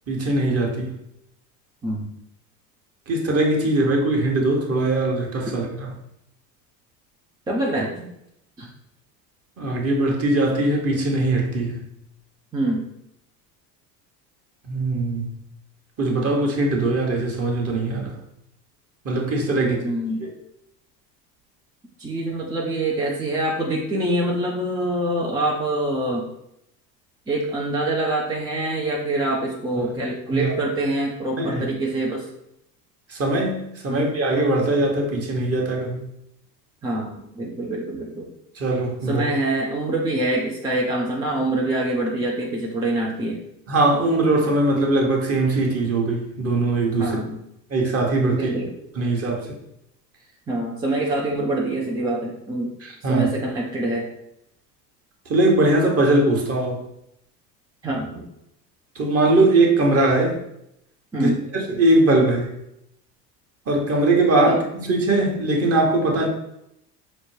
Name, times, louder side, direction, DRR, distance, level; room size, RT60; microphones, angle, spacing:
voice 1, 0.1-1.0 3.1-5.9 9.6-11.8 14.7-15.3 16.0-18.1 19.0-19.8 20.2-20.3 29.8-29.9 30.3-30.5 31.4-31.6 33.1-36.1 38.5-39.2 43.7-47.2 47.7-48.5 48.9-49.6 52.8-53.3 55.3-56.8 58.9-60.4 61.1-62.5 63.7-66.3, right 2 dB, 30° right, 1 dB, 0.9 m, -21 dB
voice 2, 7.5-8.1 8.6-8.7 12.5-12.9 19.6-20.2 22.0-26.3 27.3-32.3 33.9-34.0 36.8-38.3 39.1-43.4 47.0-47.4 48.3-48.7 50.5-52.7 53.0-54.1 57.8-58.3 61.1-61.4 64.5-64.6, right 1 dB, 10° right, -2 dB, 0.3 m, -25 dB
5.0 x 2.1 x 3.1 m, 0.79 s
hypercardioid pair, 75°, 49 cm